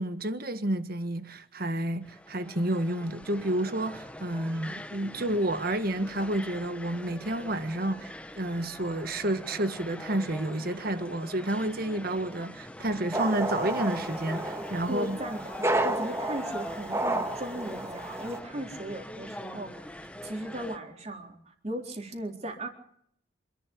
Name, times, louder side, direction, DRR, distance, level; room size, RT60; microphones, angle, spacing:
voice 1, 0.0-15.2, right 1 dB, 50° right, 1.7 m, -30 dB
sound 1, 2.0-20.8, left 1 dB, 5° left, 1.1 m, -43 dB
sound 2, 13.1-18.4, right 1 dB, 15° right, 1.7 m, -31 dB
voice 2, 14.9-19.9 20.2-22.7, right 1 dB, 35° right, 4.0 m, -37 dB
27.5 x 12.0 x 8.6 m
head